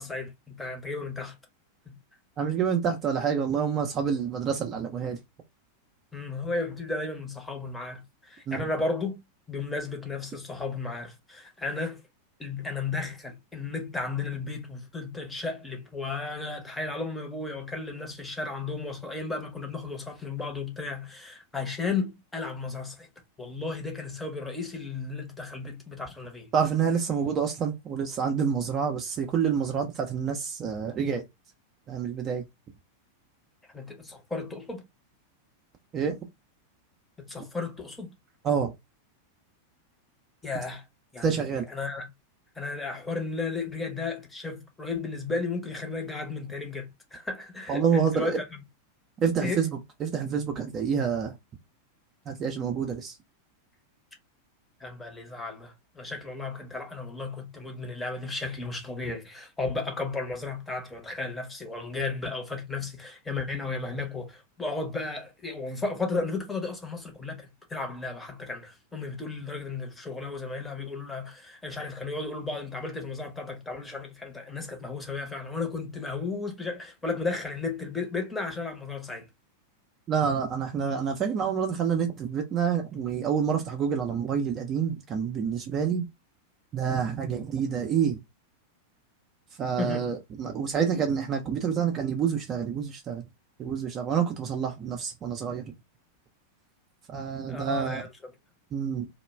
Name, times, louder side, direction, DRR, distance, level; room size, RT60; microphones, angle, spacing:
voice 1, 0.0-1.4 1.9-2.0 6.1-9.2 9.5-12.0 12.4-23.1 23.4-26.5 33.7-34.8 37.2-38.1 40.4-40.8 41.1-42.1 42.6-48.6 49.4-49.6 54.8-79.3 89.8-90.1 97.5-98.1, left 3 dB, 10° left, 0.8 m, -34 dB
voice 2, 2.4-5.2 8.5-8.6 26.5-31.2 31.9-32.5 35.9-36.2 38.4-38.7 41.2-41.7 47.7-48.4 49.2-49.7 50.0-51.3 52.3-53.2 80.1-86.0 86.7-88.2 89.6-93.3 93.6-95.7 97.1-98.0 98.7-99.1, right 7 dB, 30° right, 0.5 m, -28 dB
2.3 x 2.1 x 3.1 m
figure-of-eight pair, 90°, 0 cm